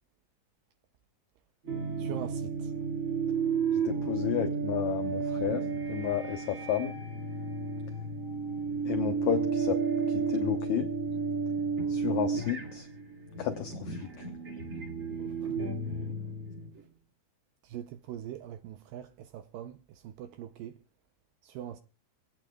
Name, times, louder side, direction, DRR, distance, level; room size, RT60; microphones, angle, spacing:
sound 1, 1.7-16.8, right 5 dB, 35° right, 1.4 m, -32 dB
voice 1, 2.0-2.5 17.7-19.1 19.3-19.7 20.0-20.7 21.6-21.8, right 11 dB, 80° right, 2.1 m, -41 dB
voice 2, 3.9-5.6 5.9-6.9 8.9-9.8 10.1-10.9 11.9-12.8 13.4-14.0, left 10 dB, 85° left, 1.6 m, -31 dB
26.5 x 9.1 x 2.3 m
omnidirectional pair, 4.6 m